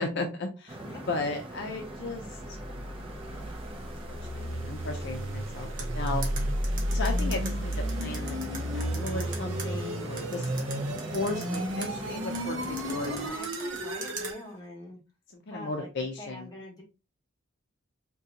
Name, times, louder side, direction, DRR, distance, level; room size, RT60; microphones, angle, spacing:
voice 1, 0.0-0.8 1.1-2.2 3.3-3.6 4.1-5.7 5.9-6.3 6.9-8.4 8.7-10.5 11.1-13.4 15.5-16.5, left 3 dB, 55° left, 4 dB, 0.5 m, -35 dB
sound 1, 0.7-13.3, right 1 dB, 25° right, 0.6 m, -42 dB
sound 2, 2.2-14.4, equal, 65° right, 0.6 m, -33 dB
sound 3, 5.8-9.7 10.2-11.9 12.3-14.3, right 4 dB, 40° right, 1.0 m, -39 dB
voice 2, 13.0-15.0 15.5-16.8, left 1 dB, 20° left, -1 dB, 1.1 m, -44 dB
3.7 x 2.2 x 2.8 m, 0.29 s
head